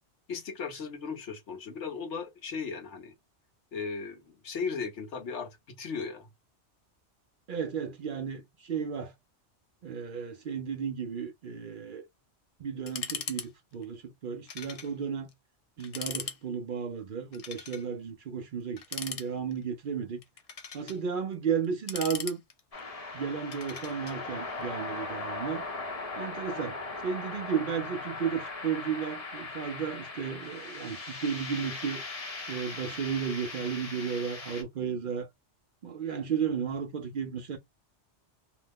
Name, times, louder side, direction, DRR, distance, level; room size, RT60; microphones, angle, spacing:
voice 1, 0.3-3.1 3.7-6.3, left 5 dB, 85° left, 1.2 m, -37 dB
voice 2, 7.5-9.1 9.8-12.0 12.6-15.3 15.8-20.2 20.7-22.4 23.1-25.6 26.2-32.0 32.5-35.3 35.8-37.6, right 7 dB, 60° right, 0.6 m, -34 dB
sound 1, 12.9-13.5 13.7-13.8 14.5-14.9 15.3-15.4 15.8-16.4 17.3-17.9 18.8-19.6 20.2-21.0 21.6-22.8 23.5-24.2, left 6 dB, 55° left, 0.4 m, -39 dB
sound 2, 22.7-34.6, left 3 dB, 35° left, 0.8 m, -39 dB
2.8 x 2.1 x 3.4 m
omnidirectional pair, 1.2 m